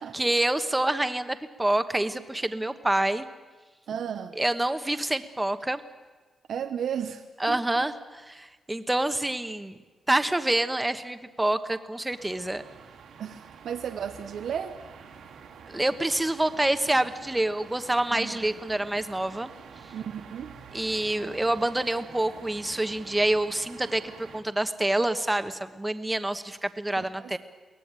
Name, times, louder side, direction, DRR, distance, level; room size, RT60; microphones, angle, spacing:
voice 1, 0.0-3.3 4.4-5.8 7.4-9.8 10.1-12.6 15.7-19.5 20.7-27.4, right 1 dB, 10° right, 9 dB, 1.2 m, -27 dB
voice 2, 3.9-4.3 6.5-7.8 13.2-14.8 18.1-18.5 19.9-20.6 27.0-27.4, right 8 dB, 75° right, 7 dB, 1.0 m, -34 dB
sound 1, 12.1-24.4, right 6 dB, 90° right, 3.3 m, -47 dB
23.0 x 18.0 x 8.9 m, 1.3 s
cardioid pair, 110°, 0 cm